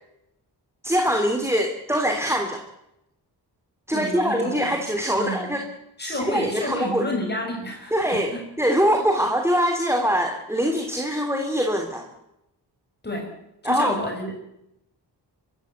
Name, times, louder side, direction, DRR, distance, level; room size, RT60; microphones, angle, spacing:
voice 1, 0.8-2.6 3.9-5.6 6.0-7.1 7.9-8.3 8.6-12.1 13.6-14.0, equal, 5° right, 3 dB, 3.2 m, -23 dB
voice 2, 3.9-4.8 5.1-5.6 6.0-8.5 9.0-9.1 13.0-13.4 13.6-14.3, left 1 dB, 25° left, 1 dB, 6.5 m, -30 dB
24.0 x 15.0 x 9.5 m, 0.84 s
wide cardioid pair, 95°, 40 cm